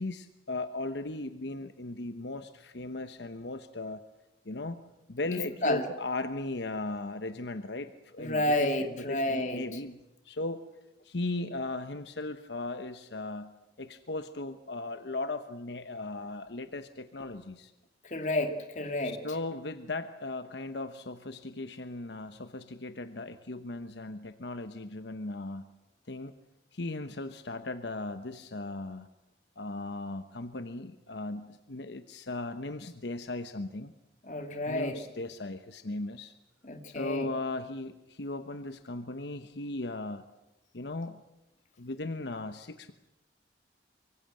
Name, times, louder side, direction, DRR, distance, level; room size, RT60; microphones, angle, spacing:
voice 1, 0.0-4.0 4.4-4.8 5.1-10.0 10.2-10.7 11.0-17.7 19.0-25.7 26.1-26.3 26.7-29.1 29.6-33.9 34.7-36.3 36.9-40.2 40.7-41.2 41.8-42.9, left 2 dB, 70° left, 10 dB, 1.0 m, -37 dB
voice 2, 5.3-5.9 8.2-9.8 18.0-19.2 34.2-35.0 36.6-37.3, left 1 dB, 40° left, 6 dB, 2.4 m, -30 dB
24.5 x 23.5 x 7.7 m, 0.95 s
head